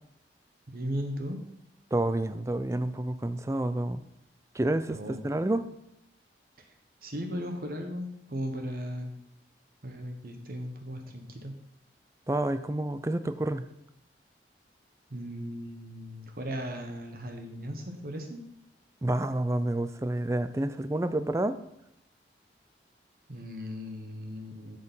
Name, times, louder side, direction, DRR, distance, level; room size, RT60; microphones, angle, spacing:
voice 1, 0.7-1.4 4.9-5.2 7.0-9.1 9.8-11.5 15.1-18.4 23.3-24.8, equal, 55° right, 4 dB, 1.1 m, -37 dB
voice 2, 1.9-4.0 4.5-5.7 12.3-13.6 19.0-21.6, right 1 dB, 15° right, 12 dB, 0.4 m, -29 dB
8.5 x 6.7 x 5.5 m, 0.82 s
head